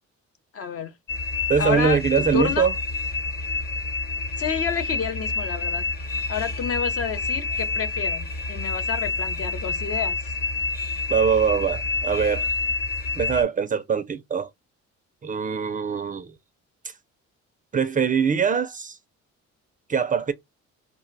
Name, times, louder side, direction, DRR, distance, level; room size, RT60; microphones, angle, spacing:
voice 1, 0.5-0.9 1.6-2.0 2.3-2.7 4.4-5.8 6.3-10.2, left 7 dB, 50° left, 0.6 m, -29 dB
sound 1, 1.1-13.4, left 4 dB, 30° left, 1.0 m, -28 dB
voice 2, 1.5-2.7 11.1-12.5 13.1-14.5 15.2-16.3 17.7-19.0 19.9-20.3, right 6 dB, 30° right, 0.3 m, -23 dB
2.5 x 2.1 x 3.8 m
cardioid pair, 90°, 30 cm